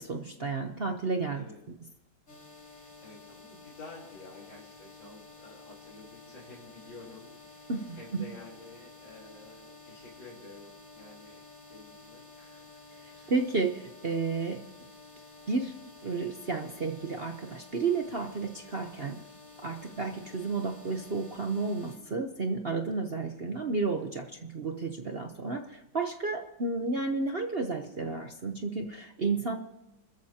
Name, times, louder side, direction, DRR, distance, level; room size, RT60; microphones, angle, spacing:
voice 1, 0.0-1.5 7.7-8.3 13.0-14.6 15.5-15.8 16.0-19.2 19.6-29.6, right 4 dB, 45° right, 5 dB, 0.8 m, -32 dB
sound 1, 2.3-22.0, left 3 dB, 45° left, 4.5 m, -52 dB
voice 2, 2.6-13.3 19.9-20.2 25.1-25.4, left 3 dB, 80° left, -6 dB, 4.3 m, -51 dB
30.0 x 14.0 x 2.9 m, 0.94 s
omnidirectional pair, 2.0 m